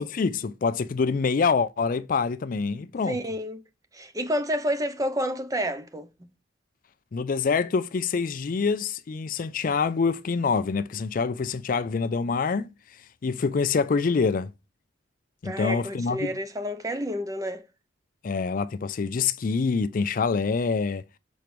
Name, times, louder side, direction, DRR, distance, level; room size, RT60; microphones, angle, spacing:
voice 1, 0.0-3.2 7.1-12.7 13.2-14.5 15.4-16.3 18.2-21.0, left 5 dB, 45° left, 0.4 m, -26 dB
voice 2, 3.1-3.6 3.9-6.1 15.4-17.7, equal, 20° right, 0.8 m, -29 dB
6.2 x 4.5 x 5.0 m
head